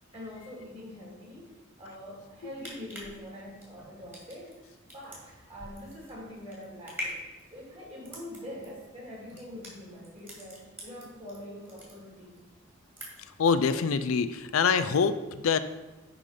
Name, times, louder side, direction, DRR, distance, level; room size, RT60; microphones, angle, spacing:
voice 1, 0.1-7.2 7.5-12.4, left 1 dB, 30° right, -4 dB, 2.8 m, -44 dB
sound 1, 2.5-11.4 11.7-12.4 12.7-13.4 13.8-13.9, left 1 dB, 10° right, 2.1 m, -43 dB
voice 2, 13.4-15.6, left 5 dB, 90° left, 11 dB, 0.5 m, -25 dB
10.5 x 3.9 x 4.9 m, 1.1 s
head